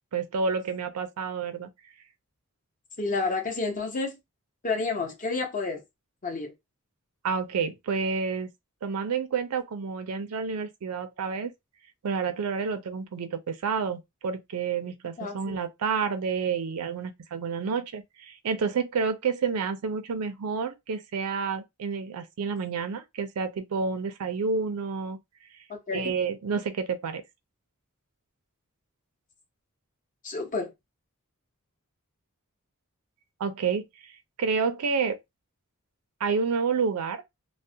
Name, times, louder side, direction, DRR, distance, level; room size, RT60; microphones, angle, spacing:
voice 1, 0.1-1.7 7.2-8.5 8.8-11.5 12.0-25.2 25.9-27.2 33.4-34.1 34.4-35.2 36.2-37.2, right 5 dB, 85° right, 0.4 m, -29 dB
voice 2, 3.0-4.2 4.6-5.8 6.2-6.5 15.2-15.6 25.7-26.1 30.2-30.7, left 3 dB, 40° left, 0.7 m, -30 dB
2.3 x 2.1 x 2.6 m
head